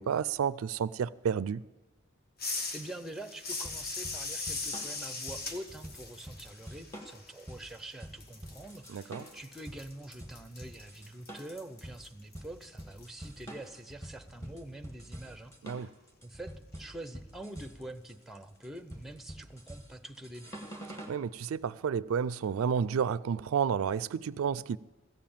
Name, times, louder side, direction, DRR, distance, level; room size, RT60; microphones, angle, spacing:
voice 1, 0.0-1.6 8.9-9.2 15.6-15.9 21.1-24.8, right 7 dB, 85° right, 0.4 m, -31 dB
sound 1, 2.4-7.9 8.2-13.1, left 3 dB, 50° left, 1.4 m, -40 dB
voice 2, 2.4-15.5 15.8-15.9 16.2-20.6, right 1 dB, ahead, 0.6 m, -45 dB
sound 2, 3.6-21.2, right 1 dB, 15° left, 1.6 m, -47 dB
15.0 x 7.5 x 8.7 m
head